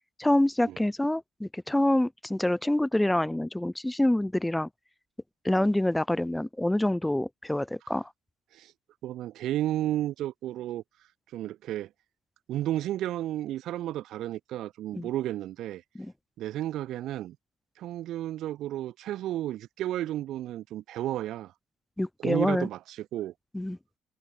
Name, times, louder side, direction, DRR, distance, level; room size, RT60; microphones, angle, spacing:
voice 1, 0.2-4.7 5.4-8.1 14.9-15.1 16.0-16.1 22.0-22.7 23.5-23.8, left 1 dB, 5° left, 1.5 m, -26 dB
voice 2, 9.0-10.8 11.3-11.9 12.5-15.8 16.4-17.4 17.8-21.5 22.2-23.3, right 13 dB, 60° right, 3.6 m, -32 dB
cardioid pair, 170°, 0 cm